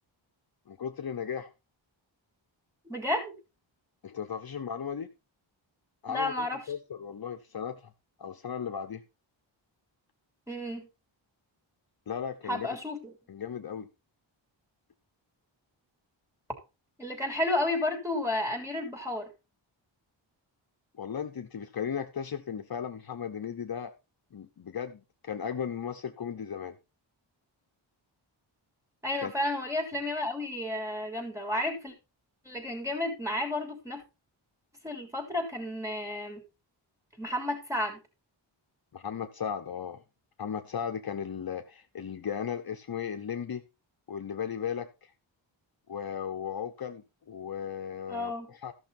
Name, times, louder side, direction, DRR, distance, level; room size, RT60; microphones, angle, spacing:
voice 1, 0.7-1.5 4.0-5.1 6.0-7.9 8.2-9.0 12.1-12.7 13.3-13.9 21.0-23.9 24.3-26.8 29.2-29.3 38.9-40.0 40.4-43.6 44.1-45.1 45.9-48.7, left 7 dB, 50° left, 0.9 m, -36 dB
voice 2, 2.9-3.3 6.1-6.6 10.5-10.9 12.5-13.1 17.0-19.3 29.0-31.9 32.5-34.0 34.8-36.4 37.2-38.0 48.1-48.5, left 1 dB, 5° right, 3.6 m, -32 dB
14.0 x 6.2 x 4.3 m
wide cardioid pair, 155°, 47 cm